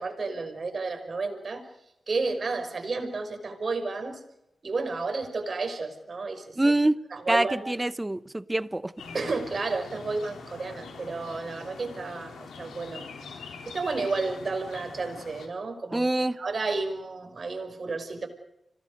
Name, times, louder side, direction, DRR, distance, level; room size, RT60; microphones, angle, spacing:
voice 1, 0.0-1.6 2.1-4.2 4.6-6.7 7.1-7.7 9.1-13.1 13.7-18.3, right 3 dB, 55° right, 5.7 m, -32 dB
voice 2, 6.6-7.0 7.3-8.9 15.9-16.4, right 1 dB, 20° right, 0.9 m, -25 dB
sound 1, 9.0-15.5, left 4 dB, 90° left, 3.3 m, -44 dB
26.0 x 19.0 x 6.6 m
cardioid pair, 45°, 0 cm